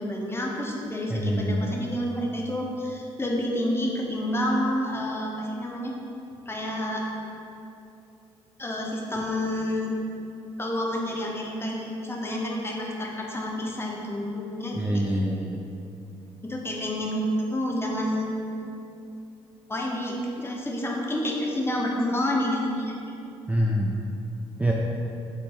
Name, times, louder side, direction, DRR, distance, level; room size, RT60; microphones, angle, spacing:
voice 1, 0.0-6.0 6.5-7.0 8.6-10.0 10.6-14.8 16.4-18.4 19.7-22.9, left 1 dB, 20° left, -1 dB, 0.7 m, -29 dB
voice 2, 1.1-1.7 14.7-15.6 23.5-24.0 24.6-24.7, equal, 10° right, -3 dB, 0.3 m, -25 dB
3.6 x 2.0 x 4.3 m, 2.7 s
supercardioid pair, 60°, 13 cm